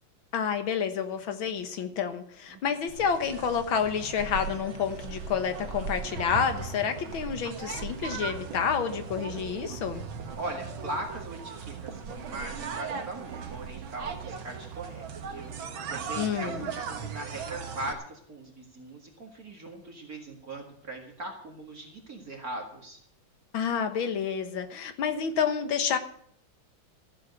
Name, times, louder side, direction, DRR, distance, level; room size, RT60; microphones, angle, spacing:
voice 1, 0.3-10.0 16.2-16.7 23.5-26.0, left 7 dB, 85° left, 8 dB, 2.1 m, -29 dB
sound 1, 2.9-17.9, right 6 dB, 80° right, 2.2 m, -38 dB
voice 2, 10.4-15.1 15.3-23.0, right 2 dB, 45° right, 1 dB, 2.4 m, -40 dB
14.5 x 7.6 x 8.0 m, 0.66 s
omnidirectional pair, 2.2 m